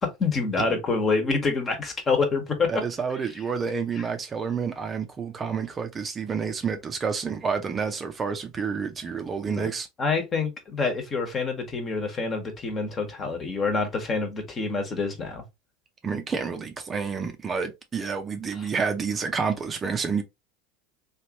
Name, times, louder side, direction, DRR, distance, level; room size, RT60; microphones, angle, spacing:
voice 1, 0.0-2.8 4.0-4.1 9.5-9.7 10.0-15.4 18.6-18.7, left 4 dB, 30° left, 1.2 m, -27 dB
voice 2, 2.7-9.9 16.0-20.2, right 5 dB, 25° right, 0.6 m, -29 dB
3.1 x 2.5 x 2.9 m
hypercardioid pair, 85°, 0 cm